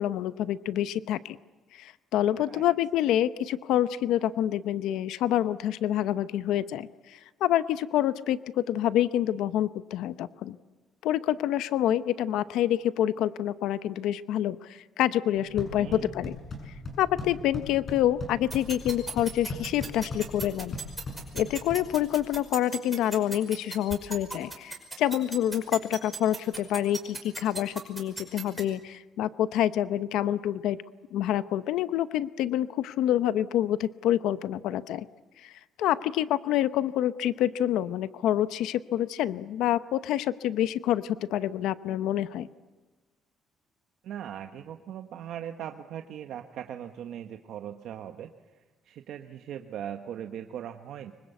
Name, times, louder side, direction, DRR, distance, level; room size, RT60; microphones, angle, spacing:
voice 1, 0.0-1.4 1.7-10.6 11.0-16.4 17.0-20.8 21.3-30.8 31.1-35.0 35.4-35.5 35.8-42.5, left 12 dB, 85° left, 14 dB, 0.8 m, -27 dB
sound 1, 15.4-22.4, left 2 dB, 35° left, 7.2 m, -39 dB
voice 2, 15.8-16.1 44.0-48.3 48.8-51.1, right 10 dB, 70° right, 6 dB, 1.3 m, -39 dB
sound 2, 18.5-28.6, right 3 dB, 10° right, 5.5 m, -36 dB
25.0 x 24.0 x 8.2 m, 1.2 s
cardioid pair, 135°, 0 cm